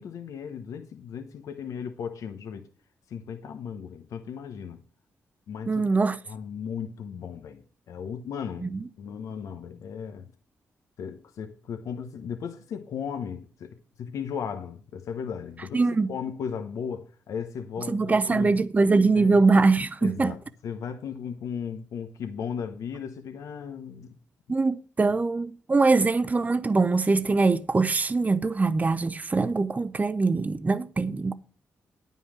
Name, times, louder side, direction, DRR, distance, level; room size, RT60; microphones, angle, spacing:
voice 1, 0.0-2.7 3.1-4.8 5.5-5.8 6.2-8.7 9.0-10.3 11.0-18.6 19.1-19.4 20.0-24.1 25.0-25.1, left 7 dB, 80° left, 0.9 m, -36 dB
voice 2, 5.7-6.2 8.7-8.8 15.7-16.1 17.9-20.3 24.5-31.3, right 3 dB, 30° right, 0.6 m, -23 dB
9.7 x 5.5 x 7.2 m
cardioid pair, 70°, 6 cm